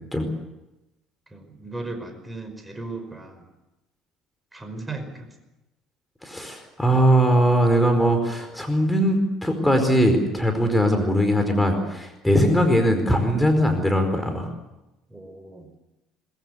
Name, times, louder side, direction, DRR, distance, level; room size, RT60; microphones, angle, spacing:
voice 1, 1.3-3.5 4.5-5.3 15.1-15.7, right 3 dB, 15° right, 6 dB, 5.3 m, -36 dB
voice 2, 6.2-14.5, equal, 5° left, 5 dB, 4.7 m, -20 dB
22.0 x 21.5 x 8.2 m, 0.97 s
hypercardioid pair, 60°, 0 cm